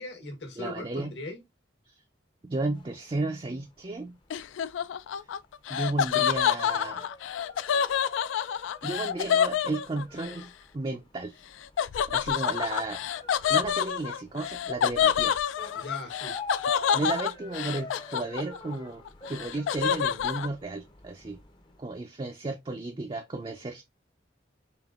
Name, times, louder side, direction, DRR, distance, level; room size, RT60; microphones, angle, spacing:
voice 1, 0.0-1.4 15.7-16.4, left 2 dB, 65° left, 1.3 m, -39 dB
voice 2, 0.6-1.1 1.9-2.0 2.4-4.2 5.7-7.1 8.8-11.4 12.1-13.1 13.5-15.4 16.9-21.4 21.8-23.8, right 2 dB, 25° right, 0.4 m, -33 dB
sound 1, 2.7-21.8, left 3 dB, 25° left, 0.6 m, -47 dB
Laughter, 4.3-10.3 11.8-18.7 19.1-20.5, left 8 dB, 85° left, 0.3 m, -27 dB
5.1 x 2.6 x 2.4 m
head